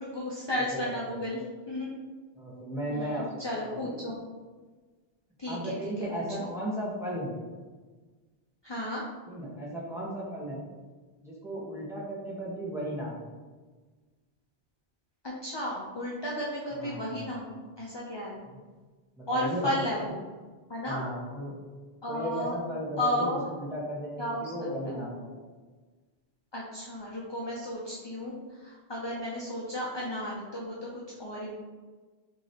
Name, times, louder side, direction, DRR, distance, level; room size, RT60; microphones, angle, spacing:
voice 1, 0.0-1.9 2.9-4.2 5.4-6.1 6.4-6.5 8.6-9.0 15.4-17.5 17.8-18.4 19.3-20.2 20.7-21.0 22.0-22.5 23.0-23.5 24.2-24.5 24.8-25.0 26.5-31.5, left 1 dB, 30° left, -5 dB, 0.6 m, -33 dB
voice 2, 0.6-1.2 2.4-3.9 5.5-7.4 9.3-10.6 11.2-13.2 16.7-17.2 18.5-18.6 19.2-20.1 20.8-21.5 22.1-25.5, equal, 5° right, -6 dB, 1.1 m, -35 dB
6.4 x 2.9 x 2.9 m, 1.4 s
omnidirectional pair, 1.1 m